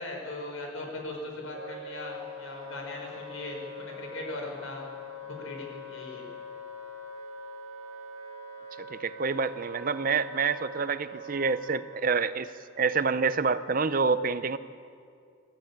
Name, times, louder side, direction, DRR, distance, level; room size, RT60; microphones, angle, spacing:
voice 1, 0.0-4.8 5.2-6.3, left 2 dB, 80° left, 1 dB, 5.4 m, -39 dB
Wind instrument woodwind instrument, 1.5-11.8, left 1 dB, 75° right, 2.4 m, -43 dB
voice 2, 8.9-12.5 12.8-14.6, right 5 dB, 40° right, 14 dB, 0.6 m, -27 dB
25.0 x 14.5 x 8.8 m, 2.3 s
head